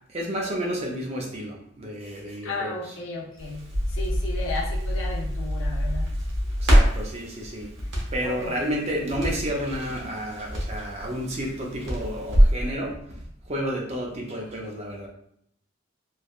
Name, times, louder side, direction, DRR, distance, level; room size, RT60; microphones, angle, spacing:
voice 1, 0.1-2.8 6.6-7.7 8.1-15.1, equal, 30° right, -1 dB, 0.5 m, -31 dB
voice 2, 2.4-6.1 8.2-8.6, left 3 dB, 75° left, -3 dB, 0.6 m, -34 dB
Crackle, 3.4-12.6, equal, 65° right, 0.9 m, -25 dB
3.3 x 2.1 x 2.4 m, 0.71 s
head